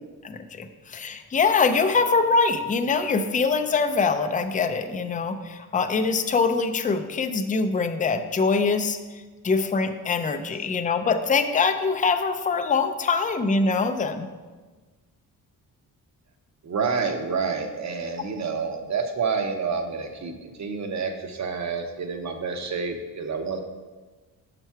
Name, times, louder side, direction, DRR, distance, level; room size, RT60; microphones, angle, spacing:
voice 1, 0.2-9.0 9.4-14.3, left 4 dB, 20° left, 7 dB, 0.5 m, -23 dB
voice 2, 16.6-23.6, right 5 dB, 45° right, 5 dB, 0.9 m, -28 dB
5.9 x 5.4 x 4.6 m, 1.3 s
cardioid pair, 90°, 37 cm